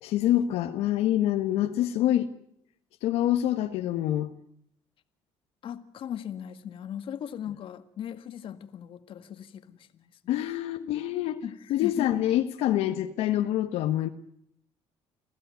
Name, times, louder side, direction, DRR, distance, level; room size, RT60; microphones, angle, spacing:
voice 1, 0.0-2.3 3.0-4.3 10.3-11.4 11.7-14.1, left 12 dB, 80° left, 1.4 m, -26 dB
voice 2, 5.6-10.3 11.4-12.1, left 9 dB, 55° left, 1.7 m, -38 dB
27.5 x 15.5 x 9.4 m
cardioid pair, 110°, 10 cm